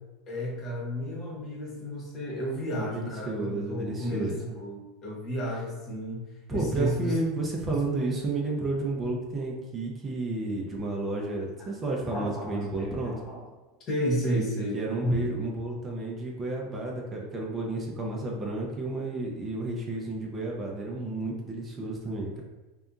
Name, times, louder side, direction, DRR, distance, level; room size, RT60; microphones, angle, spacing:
voice 1, 0.3-7.2 7.7-7.8 11.2-11.3 11.6-11.7 12.1-13.4 13.9-15.2, equal, 40° left, -3 dB, 0.9 m, -32 dB
voice 2, 2.7-4.4 6.5-13.1 14.7-22.4, right 2 dB, 25° right, -2 dB, 0.5 m, -31 dB
2.7 x 2.3 x 2.3 m, 1.2 s
supercardioid pair, 110°, 0 cm